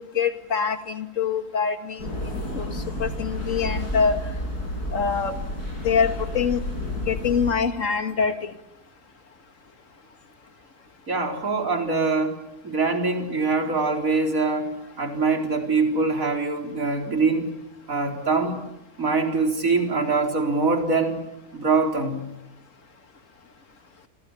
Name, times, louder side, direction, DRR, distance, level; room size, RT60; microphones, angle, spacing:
voice 1, 0.0-4.2 4.9-5.4 5.8-6.6 7.1-8.5, left 6 dB, 55° left, 8 dB, 2.2 m, -25 dB
sound 1, 2.0-7.5, left 1 dB, 80° left, 6.7 m, -31 dB
voice 2, 11.1-12.4 12.6-14.7 15.0-17.6 17.9-18.6 19.0-21.2 21.5-22.2, right 4 dB, 60° right, 3 dB, 4.5 m, -23 dB
29.5 x 25.5 x 7.1 m, 0.90 s
omnidirectional pair, 1.7 m